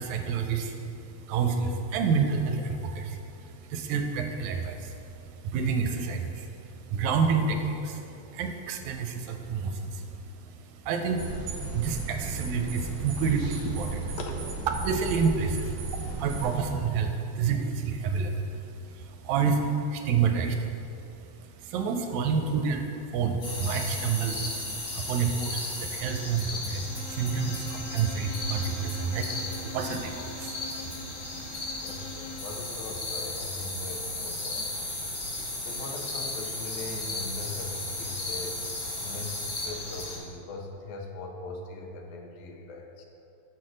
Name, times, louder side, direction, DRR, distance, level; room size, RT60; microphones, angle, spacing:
voice 1, 0.0-13.7 14.8-31.7, right 5 dB, 90° right, 4 dB, 2.0 m, -29 dB
sound 1, 11.2-16.7, right 4 dB, 70° right, 1.9 m, -35 dB
sound 2, 23.4-40.2, left 2 dB, 55° left, 2.5 m, -35 dB
Bowed string instrument, 26.8-32.6, left 3 dB, 90° left, 2.1 m, -44 dB
voice 2, 31.3-34.8 35.6-38.6 39.0-43.0, left 3 dB, 75° left, 2 dB, 1.7 m, -40 dB
6.2 x 4.4 x 6.2 m, 2.7 s
omnidirectional pair, 3.3 m